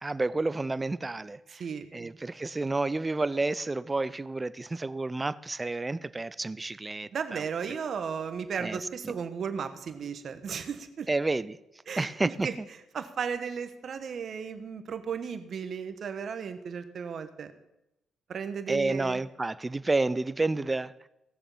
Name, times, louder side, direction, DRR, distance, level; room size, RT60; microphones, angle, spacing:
voice 1, 0.0-1.6 1.9-7.4 8.6-9.1 11.1-11.6 12.0-12.5 18.7-20.9, right 2 dB, 25° right, 17 dB, 0.6 m, -30 dB
voice 2, 1.5-2.1 7.1-11.1 11.9-12.5 12.9-17.5 18.3-19.2, right 6 dB, 60° right, 10 dB, 1.2 m, -35 dB
16.5 x 7.0 x 5.5 m, 0.90 s
supercardioid pair, 60°, 0 cm